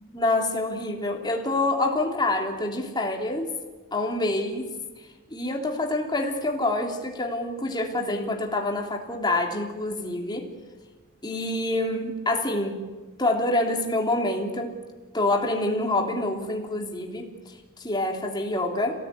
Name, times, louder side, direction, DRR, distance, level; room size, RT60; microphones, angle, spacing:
voice 1, 0.1-3.5 3.9-4.7 5.3-10.5 11.2-12.8 13.2-14.7 15.1-18.9, left 2 dB, 20° left, 1 dB, 3.3 m, -26 dB
28.5 x 18.0 x 9.7 m, 1.3 s
head